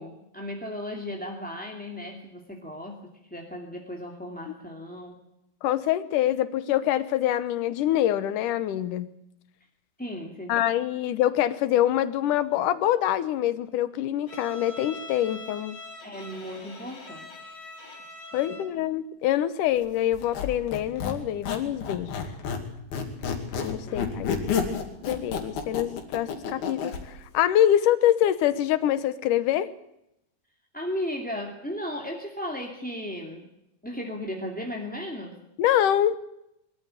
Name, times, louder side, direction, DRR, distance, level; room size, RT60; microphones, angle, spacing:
voice 1, 0.0-3.0 3.3-5.2 10.0-10.5 16.0-17.6 18.3-18.6 23.9-24.2 30.7-33.5 33.8-35.4, left 1 dB, 5° left, 1 dB, 1.4 m, -36 dB
voice 2, 5.6-9.1 10.5-15.8 18.3-22.2 23.6-24.3 24.7-29.7 35.6-36.2, left 12 dB, 70° left, 13 dB, 2.3 m, -25 dB
Bowed string instrument, 14.3-18.8, left 2 dB, 30° left, 4.6 m, -43 dB
Squeak, 20.1-22.7 22.9-27.0, left 6 dB, 85° left, 4.4 m, -30 dB
23.0 x 13.5 x 9.9 m, 0.83 s
omnidirectional pair, 4.3 m